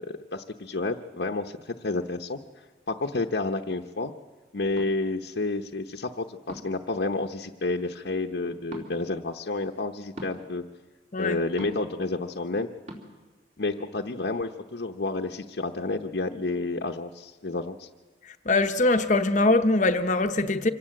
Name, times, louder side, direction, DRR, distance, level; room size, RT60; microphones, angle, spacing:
voice 1, 0.0-2.4 2.9-4.1 4.5-10.6 11.2-12.7 13.6-17.9, left 2 dB, 80° left, 0.9 m, -30 dB
sound 1, 4.7-4.9 6.5-6.8 8.7-8.9 10.1-10.4 11.6-11.9 12.9-13.0, equal, 45° right, 3.5 m, -40 dB
voice 2, 18.5-20.7, left 2 dB, 45° left, 0.8 m, -22 dB
25.5 x 17.5 x 7.8 m
head